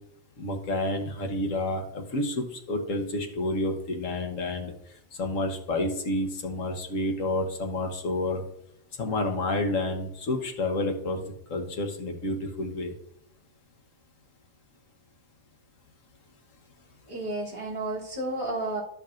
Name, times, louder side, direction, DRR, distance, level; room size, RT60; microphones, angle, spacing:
voice 1, 0.4-4.7 5.1-8.4 9.0-11.2 11.5-12.9, left 2 dB, 70° left, 3 dB, 1.5 m, -29 dB
voice 2, 17.1-18.8, right 2 dB, 20° right, -5 dB, 2.5 m, -31 dB
13.0 x 5.4 x 2.5 m, 0.74 s
omnidirectional pair, 1.4 m